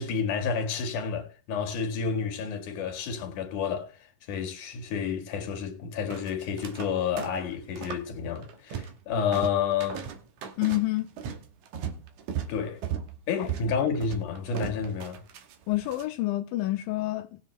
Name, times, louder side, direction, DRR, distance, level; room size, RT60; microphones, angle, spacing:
voice 1, 0.0-3.9 4.3-10.0 12.5-12.8 13.3-15.2, left 6 dB, 65° left, 3.1 m, -30 dB
sound 1, 6.1-6.9 7.2-8.1 8.4-9.0 9.3-16.0, right 8 dB, 70° right, 2.3 m, -37 dB
voice 2, 10.6-11.1 13.4-13.7 15.7-17.4, left 17 dB, 90° left, 2.4 m, -28 dB
19.0 x 7.5 x 3.2 m
omnidirectional pair, 4.0 m